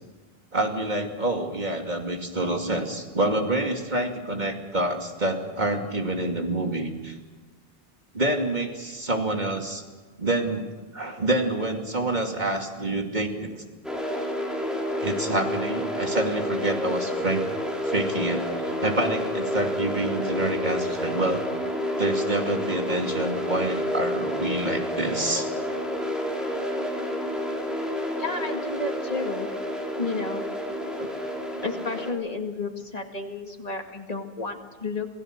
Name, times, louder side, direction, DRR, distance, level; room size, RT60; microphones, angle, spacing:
voice 1, 0.5-7.2 8.1-9.8 10.2-13.6 15.0-17.4 17.8-21.4 22.0-25.5, right 2 dB, 45° right, 2 dB, 2.7 m, -27 dB
sound 1, 13.8-32.1, equal, ahead, 3.7 m, -29 dB
voice 2, 28.2-29.5 30.0-30.4 31.0-31.1 31.6-35.1, left 3 dB, 40° left, 3 dB, 2.3 m, -32 dB
27.5 x 18.0 x 6.7 m, 1.4 s
omnidirectional pair, 1.0 m